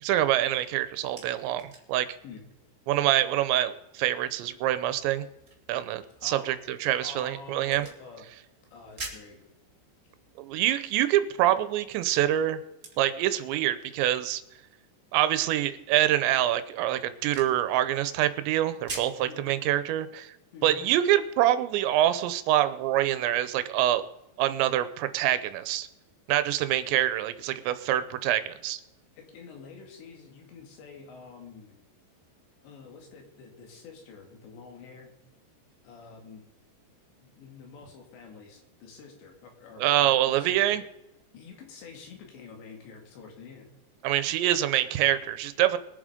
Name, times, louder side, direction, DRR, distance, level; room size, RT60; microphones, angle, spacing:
voice 1, 0.0-2.1 2.9-5.2 5.7-7.9 10.4-12.6 13.0-14.4 15.1-20.3 20.6-24.0 24.4-25.9 26.3-28.8 39.8-40.8 44.0-45.8, right 13 dB, 85° right, 12 dB, 3.0 m, -25 dB
sound 1, 0.7-19.3, right 3 dB, 35° right, 1.3 m, -49 dB
voice 2, 6.2-6.5 7.0-8.2 8.7-9.4 19.2-19.6 20.5-20.9 29.2-31.8 32.6-35.1 35.8-36.4 37.2-40.6 41.3-43.7, left 5 dB, 75° left, 2 dB, 4.4 m, -47 dB
22.5 x 7.5 x 5.1 m, 0.92 s
omnidirectional pair, 5.1 m